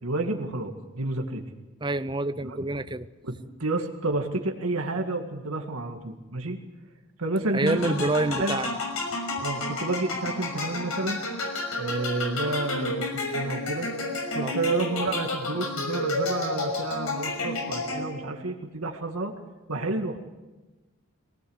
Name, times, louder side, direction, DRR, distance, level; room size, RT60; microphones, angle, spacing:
voice 1, 0.0-1.4 2.4-2.6 3.2-6.6 7.2-8.6 9.4-11.2 11.8-13.1 13.3-13.9 14.3-19.3 19.7-20.2, right 2 dB, 85° right, 3 dB, 2.0 m, -30 dB
voice 2, 1.8-3.1 7.5-8.8 14.4-14.5, right 2 dB, 20° right, 13 dB, 0.7 m, -27 dB
sound 1, 7.7-18.3, left 2 dB, 90° left, 6.0 m, -31 dB
23.0 x 18.0 x 8.0 m, 1.2 s
head